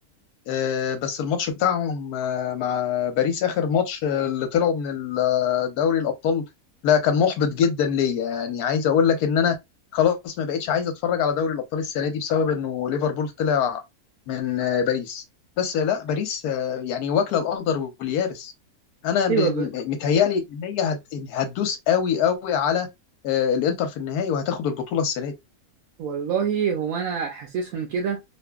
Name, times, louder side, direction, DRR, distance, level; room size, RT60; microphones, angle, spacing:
voice 1, 0.5-6.4 6.8-9.5 9.9-13.8 14.3-15.2 15.6-18.5 19.0-22.9 23.2-25.3, left 7 dB, 90° left, 1.2 m, -24 dB
voice 2, 19.3-19.7 26.0-28.2, right 7 dB, 70° right, 1.0 m, -25 dB
2.7 x 2.6 x 2.2 m
omnidirectional pair, 1.6 m